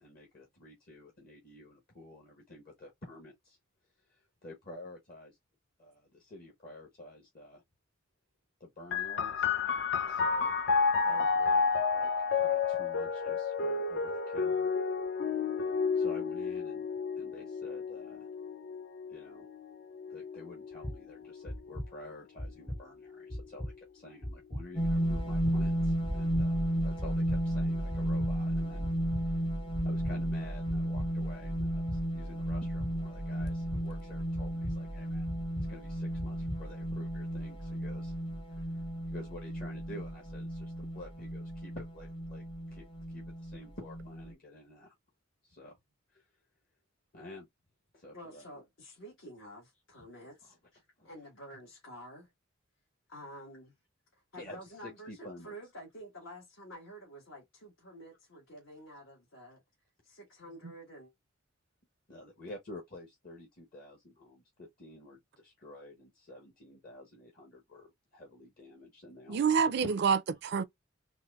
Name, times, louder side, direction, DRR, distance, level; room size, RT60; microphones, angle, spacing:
voice 1, 0.0-3.6 4.1-5.4 5.8-7.6 8.6-9.5 10.1-10.6 11.0-14.7 15.9-16.9 17.2-18.3 19.1-19.5 20.1-28.9 29.2-29.5 29.8-35.3 35.7-38.1 38.5-42.4 42.7-44.9 45.4-45.8 46.1-46.3 47.1-47.5 47.9-48.4 50.4-50.5 51.0-51.1 54.4-55.5 60.5-60.6 62.1-69.9, left 1 dB, 45° left, 1.0 m, -50 dB
sound 1, 8.9-22.1 23.0-23.8, left 5 dB, 60° left, 0.5 m, -31 dB
sound 2, 20.8-21.0 21.5-21.9 22.4-22.8 23.3-23.7 24.2-24.6 25.1-25.6 26.1-26.5 27.0-27.4 27.9-28.3 28.8-29.2 29.7-30.2 30.7-31.1 31.6-32.0 32.5-32.9 33.4-33.8 34.3-34.8 35.3-35.7 36.2-36.6, equal, 10° left, 0.4 m, -38 dB
sound 3, 24.8-44.3, equal, 25° left, 0.8 m, -33 dB
voice 2, 48.1-52.3 53.1-53.8 54.1-59.6 60.0-61.1, equal, 80° left, 1.5 m, -50 dB
voice 3, 69.3-70.6, right 6 dB, 55° right, 0.4 m, -27 dB
4.0 x 2.5 x 2.3 m
head